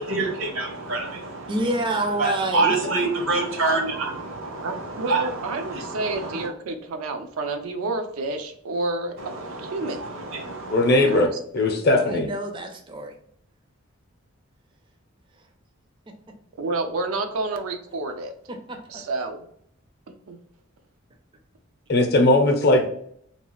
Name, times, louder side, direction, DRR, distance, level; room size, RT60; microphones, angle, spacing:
voice 1, 0.0-1.7 2.2-6.5 9.2-11.2, right 3 dB, 70° right, 2 dB, 0.8 m, -27 dB
voice 2, 1.5-2.7 12.0-13.1 18.5-19.0, right 1 dB, 25° right, 4 dB, 0.4 m, -28 dB
voice 3, 4.6-10.0 10.9-11.3 16.6-18.3 18.9-19.4 20.3-20.4, right 2 dB, 90° right, 6 dB, 0.4 m, -29 dB
voice 4, 10.7-11.3 11.5-12.3 21.9-22.9, left 2 dB, 50° left, 4 dB, 0.6 m, -18 dB
2.9 x 2.3 x 3.0 m, 0.67 s
head